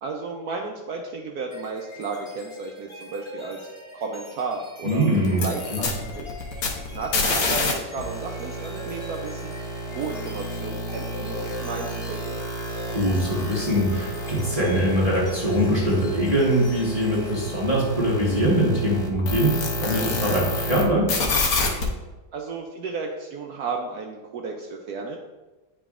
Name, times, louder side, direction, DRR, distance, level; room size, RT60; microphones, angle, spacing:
voice 1, 0.0-3.6 3.9-5.1 5.4-6.6 6.9-9.6 9.8-12.4 22.3-25.2, right 4 dB, 75° right, 1 dB, 0.9 m, -33 dB
sound 1, 1.5-18.2, left 1 dB, 40° left, 0.4 m, -42 dB
voice 2, 4.8-5.4 5.7-5.8 12.9-21.1, equal, 20° right, -6 dB, 1.1 m, -22 dB
sound 2, 5.3-7.7 8.0-20.8 21.1-21.8, left 2 dB, 55° left, 1.2 m, -29 dB
9.0 x 4.9 x 2.4 m, 1.1 s
omnidirectional pair, 2.1 m